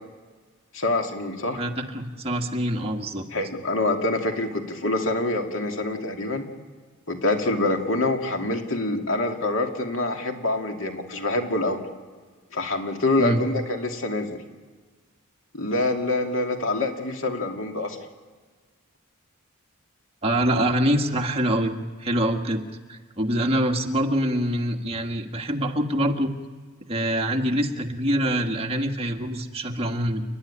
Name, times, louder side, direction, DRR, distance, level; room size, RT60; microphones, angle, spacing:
voice 1, 0.7-1.6 3.3-6.5 7.1-11.8 12.5-14.4 15.5-18.0, left 2 dB, 65° left, 3 dB, 2.6 m, -26 dB
voice 2, 1.6-3.2 13.2-13.4 20.2-21.7 22.0-22.6 22.9-26.3 26.9-30.2, right 1 dB, 30° right, 2 dB, 1.7 m, -25 dB
29.5 x 11.5 x 9.9 m, 1.5 s
head